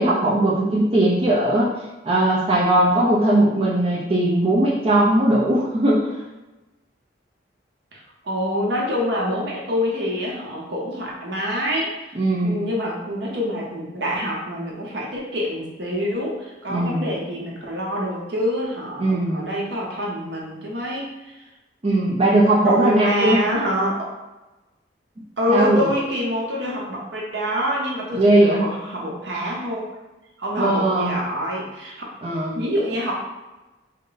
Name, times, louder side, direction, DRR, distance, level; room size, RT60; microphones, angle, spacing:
voice 1, 0.0-1.7 2.0-6.1 12.1-12.6 16.7-17.1 19.0-19.4 21.8-23.4 25.5-25.9 28.1-28.6 30.6-31.1 32.2-32.6, right 1 dB, 30° right, -6 dB, 0.6 m, -19 dB
voice 2, 7.9-11.9 12.4-21.3 22.6-24.1 25.4-29.8 30.4-31.9 32.5-33.1, equal, 70° right, -3 dB, 0.9 m, -26 dB
3.7 x 2.2 x 3.9 m, 1.1 s
head